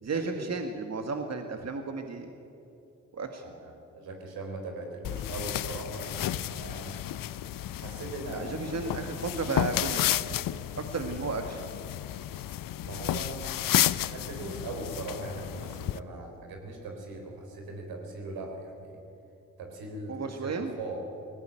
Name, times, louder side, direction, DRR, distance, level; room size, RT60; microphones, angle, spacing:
voice 1, 0.0-2.3 3.1-3.4 8.3-10.4 10.8-11.7 20.1-20.7, right 4 dB, 45° right, 5 dB, 1.9 m, -33 dB
voice 2, 3.4-7.0 7.7-9.1 12.7-19.0 19.6-20.2 20.4-21.1, right 2 dB, 85° right, 2 dB, 4.1 m, -40 dB
sound 1, 5.0-16.0, left 13 dB, 70° left, 0.7 m, -32 dB
19.5 x 17.0 x 9.1 m, 2.7 s
supercardioid pair, 50°, 35 cm